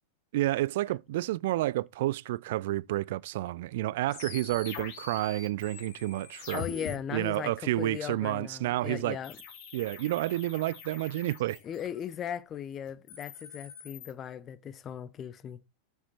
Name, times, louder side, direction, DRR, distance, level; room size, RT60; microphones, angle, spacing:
voice 1, 0.3-6.6 7.1-9.2 9.7-11.6, right 16 dB, 55° right, 0.4 m, -30 dB
sound 1, 4.1-6.9 9.2-12.1 12.9-14.1, left 6 dB, 45° left, 2.7 m, -44 dB
voice 2, 6.5-9.4 11.6-15.6, left 9 dB, 25° left, 0.8 m, -38 dB
7.1 x 6.5 x 4.7 m
figure-of-eight pair, 90°, 0 cm